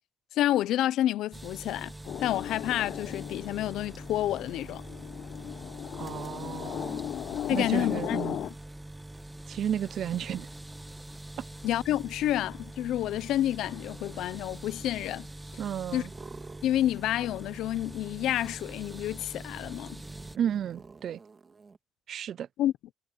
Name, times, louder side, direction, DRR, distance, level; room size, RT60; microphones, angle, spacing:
voice 1, 0.3-1.9 2.2-4.8 7.5-8.2 11.6-15.3 15.9-16.0 16.6-20.0 22.6-22.7, left 13 dB, 85° left, 0.7 m, -29 dB
sound 1, 1.3-20.4, right 1 dB, 10° right, 2.0 m, -44 dB
sound 2, 2.0-8.5, left 10 dB, 65° left, 0.4 m, -37 dB
voice 2, 6.0-7.1 7.5-8.4 9.5-10.5 11.4-11.5 15.6-16.1 20.4-21.2 22.1-22.5, right 9 dB, 65° right, 0.4 m, -33 dB
sound 3, 15.9-17.2 17.4-21.8, right 4 dB, 35° right, 2.8 m, -51 dB
cardioid pair, 90°, 0 cm